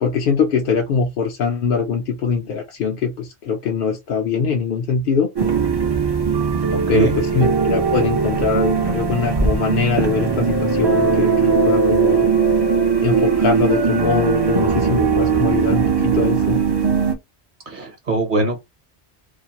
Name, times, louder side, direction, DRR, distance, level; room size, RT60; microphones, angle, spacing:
voice 1, 0.0-5.3 6.9-12.3 13.0-16.6, left 6 dB, 60° left, 0.7 m, -22 dB
sound 1, 5.4-17.1, right 5 dB, 35° right, 0.4 m, -19 dB
voice 2, 6.7-7.2 17.7-18.6, right 2 dB, 50° right, 1.0 m, -22 dB
2.5 x 2.4 x 2.8 m
omnidirectional pair, 1.1 m